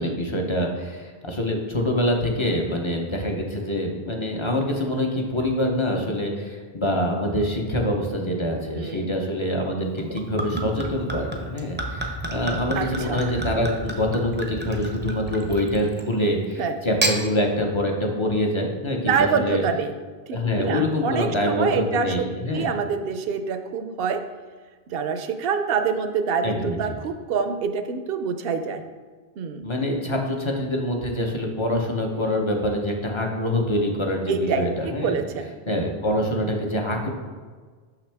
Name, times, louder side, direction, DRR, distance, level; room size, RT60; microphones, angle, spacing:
voice 1, 0.0-19.6 20.3-22.7 26.4-26.8 29.6-35.2 35.7-37.1, left 1 dB, 30° left, 1 dB, 0.7 m, -25 dB
voice 2, 8.8-9.1 12.8-13.2 16.6-16.7 19.0-19.9 20.3-22.3 22.5-24.2 24.9-28.8 29.4-29.7 34.3-35.5, right 6 dB, 70° right, 8 dB, 0.7 m, -26 dB
Gurgling / Chink clink / Liquid, 10.0-16.1 16.8-17.2, right 2 dB, 15° right, 0.5 m, -30 dB
6.2 x 5.9 x 3.4 m, 1.5 s
omnidirectional pair, 1.0 m